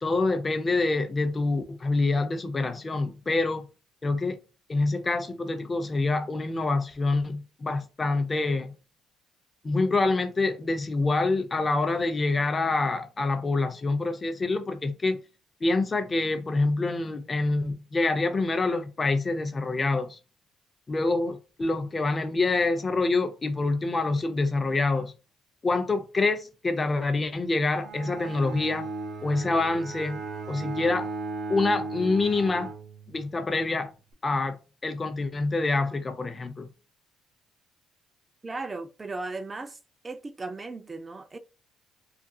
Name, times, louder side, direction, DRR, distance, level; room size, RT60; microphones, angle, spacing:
voice 1, 0.0-3.7 4.0-4.4 4.7-8.7 9.6-15.2 15.6-20.2 20.9-25.1 25.6-28.9 29.2-30.2 30.5-31.1 31.5-32.7 33.1-33.9 34.2-36.7, left 3 dB, 25° left, 0.5 m, -26 dB
Bowed string instrument, 27.7-33.5, right 3 dB, 70° right, 0.7 m, -36 dB
voice 2, 38.4-39.8 40.0-41.4, right 3 dB, 25° right, 0.4 m, -36 dB
2.4 x 2.3 x 2.6 m
cardioid pair, 100°, 0 cm